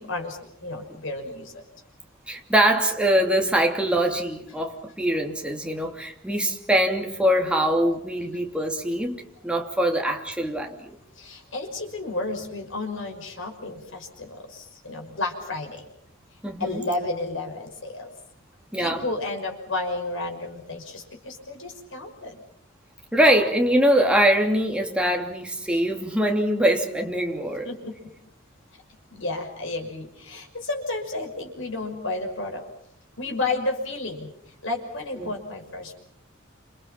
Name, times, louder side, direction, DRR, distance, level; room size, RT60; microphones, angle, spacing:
voice 1, 0.0-1.6 11.2-15.8 16.6-18.1 18.8-22.4 27.6-28.1 29.1-32.6 33.2-34.3 34.6-36.0, left 2 dB, 65° left, 2 dB, 6.0 m, -32 dB
voice 2, 2.3-11.0 16.4-16.8 18.7-19.0 23.1-27.7 35.2-35.3, equal, 5° right, 2 dB, 3.0 m, -23 dB
29.5 x 27.5 x 5.8 m, 0.70 s
head